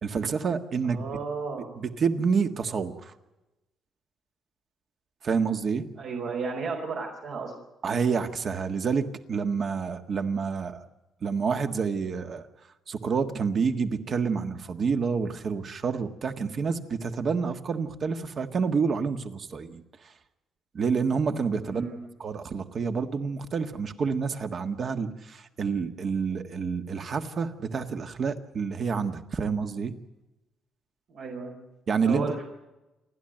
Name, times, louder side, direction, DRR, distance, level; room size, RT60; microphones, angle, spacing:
voice 1, 0.0-1.0 1.8-3.1 5.2-5.9 7.8-10.9 11.2-12.4 12.9-20.1 20.7-21.8 22.2-29.9 31.9-32.4, right 5 dB, 45° right, 8 dB, 1.6 m, -28 dB
voice 2, 0.8-1.8 6.0-7.5 21.6-22.0 31.1-31.6 32.0-32.3, right 4 dB, 70° right, 0 dB, 4.6 m, -34 dB
29.0 x 12.0 x 9.0 m, 1.0 s
cardioid pair, 125°, 0 cm